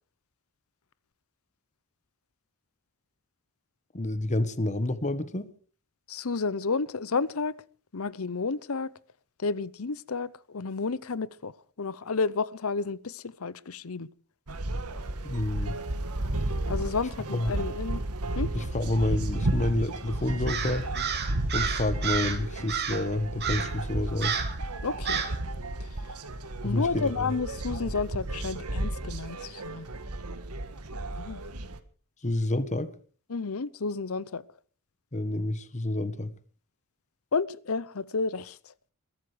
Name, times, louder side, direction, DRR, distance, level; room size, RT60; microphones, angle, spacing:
voice 1, 3.9-5.5 15.2-15.8 17.3-17.6 18.5-20.9 21.5-24.4 26.6-27.3 32.2-32.9 35.1-36.3, left 1 dB, 30° left, 1.3 m, -29 dB
voice 2, 6.1-7.5 7.9-8.9 9.4-11.5 11.8-14.1 16.7-18.0 18.4-18.5 24.8-25.2 26.6-29.9 31.2-31.4 33.3-34.4 37.3-38.7, left 4 dB, 65° left, 0.8 m, -31 dB
sound 1, 14.5-31.8, right 2 dB, 90° right, 1.6 m, -33 dB
Crow, 20.5-22.4 22.7-23.1 23.4-23.8 24.2-24.6 25.1-25.4, right 7 dB, 50° right, 2.7 m, -31 dB
21.5 x 12.5 x 5.0 m
head